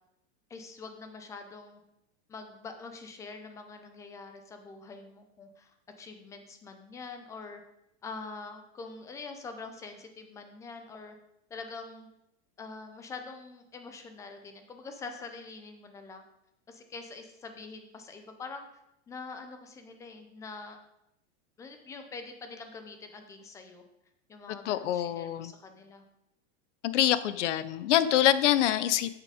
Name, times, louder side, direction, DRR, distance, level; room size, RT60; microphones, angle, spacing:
voice 1, 0.5-1.8 2.3-7.6 8.0-11.2 11.5-12.1 12.6-16.2 16.7-18.7 19.1-20.8 21.6-23.8 24.3-26.0, left 4 dB, 10° left, 6 dB, 0.4 m, -44 dB
voice 2, 24.6-25.5 26.8-29.2, left 12 dB, 85° left, 15 dB, 0.7 m, -25 dB
8.5 x 6.7 x 4.9 m, 0.86 s
supercardioid pair, 165°, 35 cm